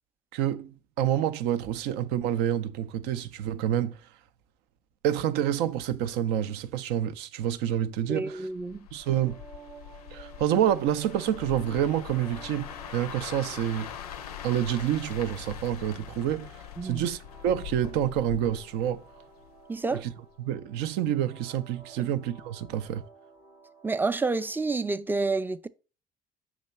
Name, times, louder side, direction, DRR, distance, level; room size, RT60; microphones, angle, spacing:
voice 1, 0.3-4.0 5.0-8.5 8.9-9.4 10.1-13.9 14.4-19.0 20.0-20.1 20.4-23.0, right 11 dB, 60° right, 0.5 m, -28 dB
voice 2, 8.1-8.9 16.8-17.1 19.7-20.0 22.0-22.1 23.8-25.7, right 3 dB, 10° right, 0.4 m, -29 dB
sound 1, 8.5-19.7 20.0-20.3, left 10 dB, 80° left, 0.4 m, -42 dB
sound 2, 9.0-24.9, right 5 dB, 85° right, 1.4 m, -53 dB
5.8 x 2.9 x 5.4 m
figure-of-eight pair, 50°, 19 cm